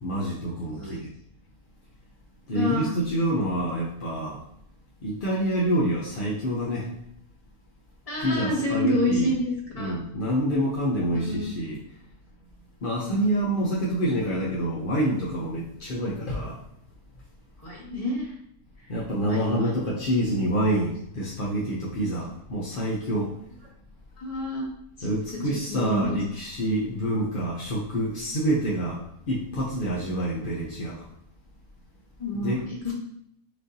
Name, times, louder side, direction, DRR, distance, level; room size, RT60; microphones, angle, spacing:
voice 1, 0.0-1.1 2.5-4.4 5.0-6.9 8.2-9.3 9.8-11.8 12.8-16.6 18.9-23.3 25.0-29.0 29.3-31.1 32.3-32.9, right 1 dB, 55° left, -5 dB, 0.6 m, -27 dB
voice 2, 2.5-2.9 8.1-9.9 11.1-11.6 13.0-13.6 17.6-18.3 19.2-19.7 24.2-24.6 25.0-25.1 25.3-25.4 25.7-26.2 32.2-32.9, left 1 dB, 25° left, -3 dB, 1.2 m, -28 dB
6.3 x 2.6 x 2.7 m, 0.72 s
omnidirectional pair, 1.6 m